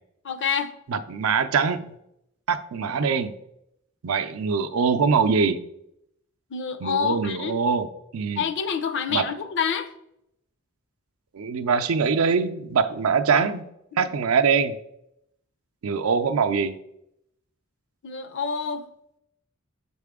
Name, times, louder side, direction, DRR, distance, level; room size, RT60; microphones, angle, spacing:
voice 1, 0.2-0.7 6.5-7.6 8.4-9.9 13.4-13.5 13.9-14.1 18.0-18.8, left 7 dB, 60° left, 11 dB, 0.5 m, -27 dB
voice 2, 0.9-1.8 2.5-3.3 4.0-5.6 6.8-7.9 8.1-8.5 9.1-9.3 11.3-13.6 14.0-14.8 15.8-16.8, right 5 dB, 90° right, 8 dB, 0.5 m, -23 dB
6.6 x 4.2 x 3.6 m, 0.78 s
head